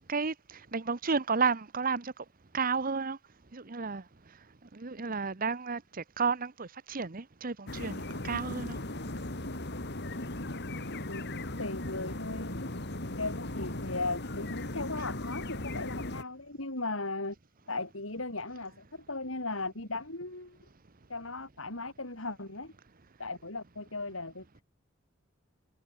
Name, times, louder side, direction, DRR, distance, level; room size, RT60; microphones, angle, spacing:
voice 1, 0.1-2.1 2.5-3.2 3.5-4.0 4.7-8.8, right 5 dB, 45° right, 1.0 m, -32 dB
City Atmo B, 7.7-16.2, left 1 dB, 55° left, 3.2 m, -37 dB
voice 2, 11.6-12.5 13.2-17.4 17.7-20.6 21.1-22.7 23.2-24.6, left 3 dB, 80° left, 5.7 m, -37 dB
head